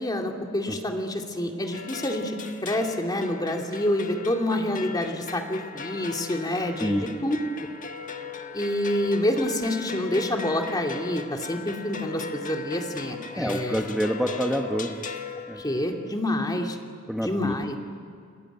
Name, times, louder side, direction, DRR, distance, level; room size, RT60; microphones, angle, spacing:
voice 1, 0.0-2.4 2.6-7.4 8.5-13.8 15.6-16.8 17.2-17.8, left 1 dB, 20° left, 3 dB, 2.6 m, -27 dB
sound 1, 1.7-16.2, left 5 dB, 40° left, 1.5 m, -39 dB
voice 2, 13.4-14.9 15.5-15.6 17.1-17.5, equal, ahead, 2 dB, 1.2 m, -27 dB
29.5 x 20.0 x 9.2 m, 2.3 s
head